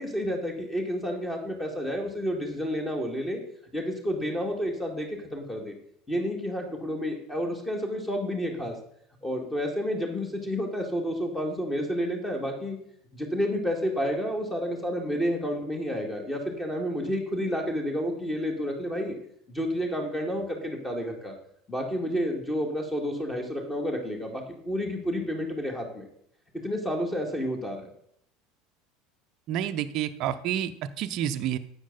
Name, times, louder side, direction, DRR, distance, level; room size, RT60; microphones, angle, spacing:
voice 1, 0.0-3.4 3.7-5.7 6.1-8.7 9.2-12.8 13.1-19.2 19.5-21.4 21.7-26.1 26.6-27.9, equal, 15° left, 2 dB, 2.3 m, -30 dB
voice 2, 29.5-31.6, right 11 dB, 50° right, 10 dB, 0.6 m, -29 dB
12.0 x 8.1 x 4.0 m, 0.67 s
figure-of-eight pair, 70°, 0 cm